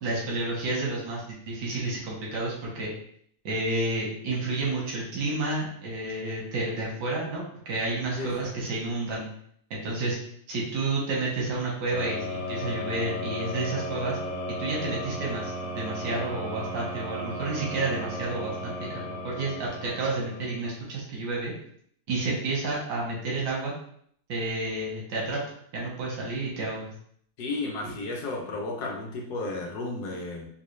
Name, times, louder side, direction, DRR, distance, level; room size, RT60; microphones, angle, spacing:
voice 1, 0.0-2.9 3.4-9.3 9.7-10.2 10.5-14.2 14.6-21.5 22.1-23.7 24.3-25.4 25.7-26.9 27.8-27.9, right 2 dB, 90° right, -4 dB, 1.5 m, -30 dB
voice 2, 8.2-8.5 27.4-30.5, left 2 dB, 70° left, 0 dB, 1.3 m, -33 dB
sound 1, 11.9-20.8, left 1 dB, 90° left, 1.5 m, -35 dB
3.9 x 2.3 x 3.1 m, 0.65 s
omnidirectional pair, 1.8 m